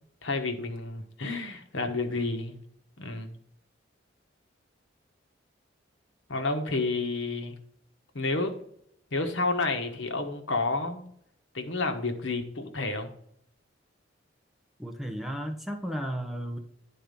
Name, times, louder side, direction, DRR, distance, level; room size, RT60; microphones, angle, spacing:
voice 1, 0.2-2.6 3.0-3.4 6.3-7.6 8.1-8.6 9.1-11.0 11.5-13.1, left 3 dB, 75° left, 5 dB, 1.2 m, -30 dB
voice 2, 14.8-16.6, equal, ahead, 4 dB, 0.9 m, -34 dB
10.0 x 4.2 x 5.3 m, 0.70 s
head